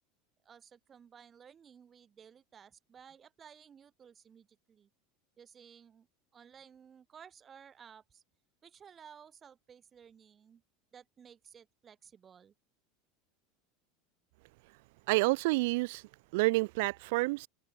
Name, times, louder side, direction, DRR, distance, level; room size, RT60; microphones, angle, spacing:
voice 1, 0.4-4.9 5.4-6.1 6.3-8.2 8.6-10.6 10.9-12.5, right 7 dB, 20° right, 4.6 m, -56 dB
voice 2, 15.1-16.0 16.3-17.5, right 24 dB, 65° right, 0.4 m, -28 dB
open air
supercardioid pair, 165°, 0 cm